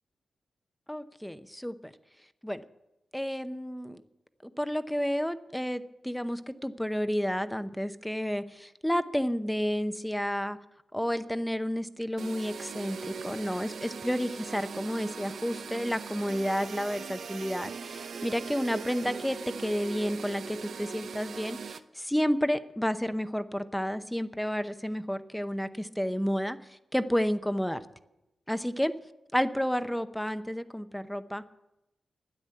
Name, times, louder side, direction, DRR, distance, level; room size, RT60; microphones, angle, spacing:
voice 1, 0.9-1.9 2.4-2.6 3.1-4.0 4.6-10.6 10.9-27.9 28.5-29.0 29.3-31.5, equal, 5° left, 11 dB, 0.7 m, -31 dB
sound 1, 12.2-21.8, right 6 dB, 75° right, 0.7 m, -40 dB
12.5 x 9.8 x 7.6 m, 0.91 s
wide cardioid pair, 100°, 0 cm